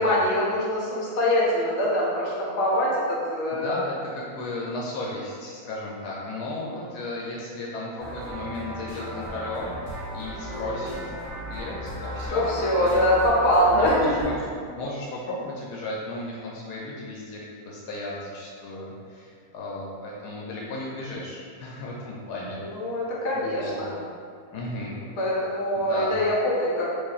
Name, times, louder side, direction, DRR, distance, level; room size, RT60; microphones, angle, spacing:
voice 1, 0.0-3.7 6.7-6.9 10.4-10.8 12.3-14.3 22.6-24.0 25.2-26.9, equal, 50° left, -6 dB, 1.0 m, -24 dB
voice 2, 3.5-11.1 11.5-13.3 13.7-14.4 14.7-22.6 23.3-23.8 24.5-24.9 25.7-26.2, left 2 dB, 85° left, -4 dB, 1.1 m, -35 dB
sound 1, 8.0-14.4, equal, 30° left, 1.2 m, -36 dB
2.8 x 2.7 x 3.9 m, 2.2 s
omnidirectional pair, 1.6 m